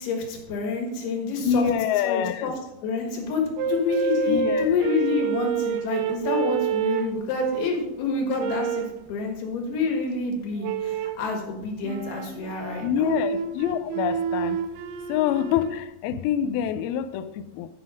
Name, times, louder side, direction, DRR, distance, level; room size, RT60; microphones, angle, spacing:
voice 1, 0.0-1.6 2.0-2.5 2.8-13.2, left 4 dB, 70° left, 1 dB, 3.5 m, -28 dB
voice 2, 1.4-2.5 4.3-4.7 12.8-14.6 15.1-17.7, left 9 dB, 90° left, 11 dB, 2.1 m, -26 dB
sound 1, 3.6-7.8 8.4-9.0 10.6-11.3 11.8-15.8, right 7 dB, 80° right, 2.3 m, -28 dB
9.9 x 5.7 x 5.0 m, 0.90 s
omnidirectional pair, 4.9 m